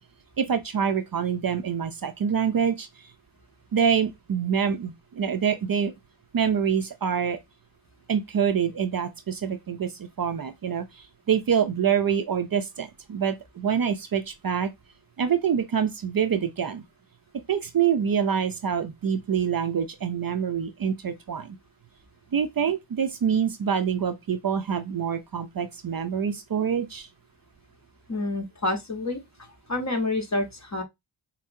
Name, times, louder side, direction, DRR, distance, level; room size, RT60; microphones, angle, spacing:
voice 1, 0.4-3.1 3.7-5.9 6.3-7.4 8.1-14.7 15.2-16.8 17.5-21.6 22.3-27.1, right 7 dB, 45° right, 0.5 m, -26 dB
voice 2, 28.1-30.8, left 2 dB, 35° left, 1.1 m, -29 dB
5.5 x 2.0 x 2.6 m
cardioid pair, 45°, 49 cm